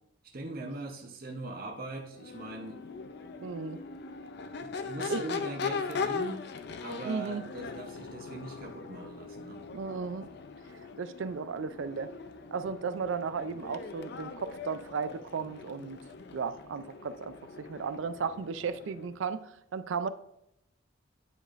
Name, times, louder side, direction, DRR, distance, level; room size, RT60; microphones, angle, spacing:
voice 1, 0.2-2.8 4.6-6.4 6.8-9.6, right 2 dB, 45° right, 1 dB, 0.8 m, -41 dB
Crowd / Race car auto racing / Accelerating revving vroom, 2.1-19.2, left 5 dB, 55° left, 0.5 m, -40 dB
voice 2, 3.4-3.8 5.1-5.2 7.0-7.4 9.7-10.3 11.0-12.1 12.5-16.0 16.3-20.1, right 5 dB, 70° right, 13 dB, 0.4 m, -35 dB
9.6 x 5.0 x 2.5 m, 0.81 s
head